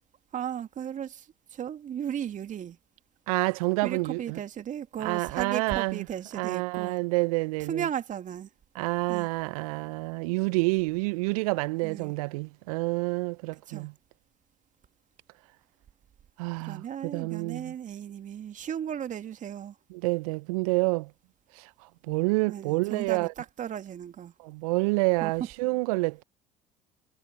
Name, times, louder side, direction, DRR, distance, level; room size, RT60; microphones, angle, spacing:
voice 1, 0.3-2.8 3.8-7.0 7.6-8.5 9.1-9.3 11.8-12.1 13.7-13.9 16.6-19.7 22.5-24.3 25.2-25.5, right 9 dB, 40° right, 2.5 m, -35 dB
voice 2, 3.3-4.4 5.0-6.0 6.3-7.8 8.8-13.9 16.4-16.8 17.1-17.7 19.9-21.1 21.6-21.7 22.1-23.3 24.4-26.2, right 26 dB, 65° right, 1.1 m, -28 dB
figure-of-eight pair, 65°, 19 cm